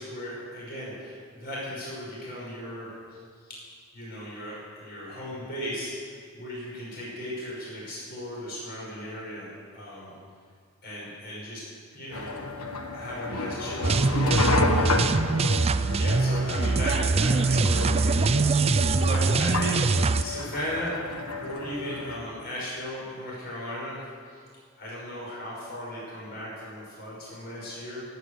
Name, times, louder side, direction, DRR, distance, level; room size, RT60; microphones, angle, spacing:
voice 1, 0.0-3.2 3.9-5.9 6.3-10.1 10.8-11.6 11.9-12.3 12.9-15.0 15.9-19.7 20.2-20.9 21.4-24.4 24.8-28.0, equal, 45° left, -6 dB, 5.8 m, -36 dB
sound 1, 12.1-22.2, left 2 dB, 90° left, 1.6 m, -31 dB
sound 2, 13.8-20.2, right 3 dB, 30° right, 0.4 m, -23 dB
17.5 x 9.6 x 8.4 m, 2.1 s
head